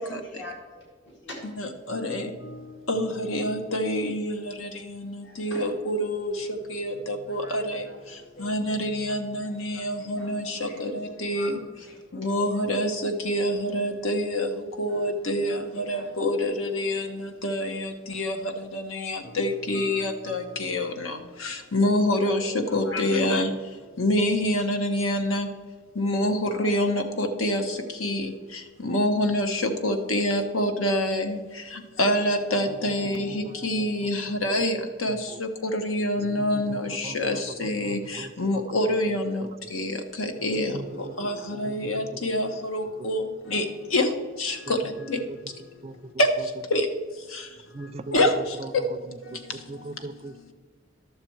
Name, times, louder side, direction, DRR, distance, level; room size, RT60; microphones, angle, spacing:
voice 1, 0.0-2.6 3.5-3.9 4.2-5.7 7.3-9.1 9.5-10.8 11.2-12.9 15.5-16.1 22.6-23.2, equal, 65° left, -1 dB, 1.8 m, -45 dB
voice 2, 1.4-11.6 12.1-25.5 25.9-45.5 46.2-46.9 47.1-47.6 48.1-48.8 49.2-49.7, left 1 dB, 90° left, 6 dB, 1.1 m, -27 dB
voice 3, 32.7-33.7 34.6-34.7 35.1-35.4 36.2-39.2 39.4-39.7 40.7-42.6 43.0-43.4 44.7-45.4 45.8-46.0 46.4-46.5 46.7-46.8 47.7-50.5, right 2 dB, 30° right, 11 dB, 0.4 m, -41 dB
11.5 x 6.8 x 4.6 m, 1.5 s
head